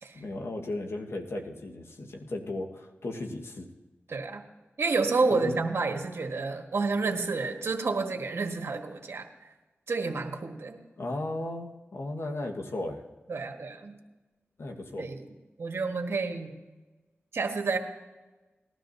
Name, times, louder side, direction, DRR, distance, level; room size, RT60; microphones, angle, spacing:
voice 1, 0.1-3.7 5.3-5.5 11.0-13.0 14.6-15.1, left 2 dB, 70° left, 2 dB, 1.5 m, -35 dB
voice 2, 4.1-4.4 4.8-9.3 9.9-10.8 13.3-14.0 15.0-15.2 15.6-16.5 17.3-17.8, right 4 dB, 75° right, 3 dB, 1.5 m, -29 dB
19.0 x 12.5 x 2.8 m, 1.2 s
cardioid pair, 50°, 4 cm